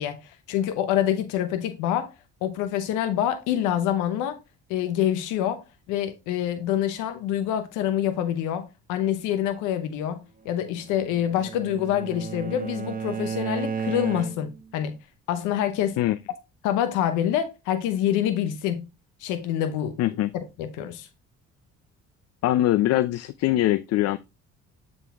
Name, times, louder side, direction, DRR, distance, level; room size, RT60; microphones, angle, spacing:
voice 1, 0.0-2.1 2.4-4.4 4.7-14.9 15.3-16.0 16.6-18.8 19.2-20.0 20.3-21.1, left 10 dB, 85° left, 0.8 m, -26 dB
Bowed string instrument, 10.7-14.7, right 6 dB, 30° right, 1.0 m, -33 dB
voice 2, 20.0-20.3 22.4-24.2, left 14 dB, 55° left, 0.4 m, -22 dB
7.4 x 3.9 x 3.4 m
supercardioid pair, 85°, 30 cm